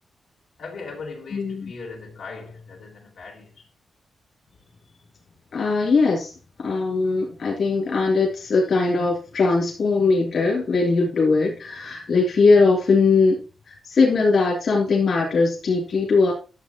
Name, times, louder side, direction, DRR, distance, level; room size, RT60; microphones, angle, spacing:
voice 1, 0.6-3.7, left 4 dB, 85° left, 4.0 m, -39 dB
voice 2, 1.3-1.6 5.5-6.3 6.6-13.4 13.7-16.3, left 4 dB, 55° left, 3.1 m, -20 dB
12.5 x 7.5 x 3.0 m
wide cardioid pair, 170°, 0 cm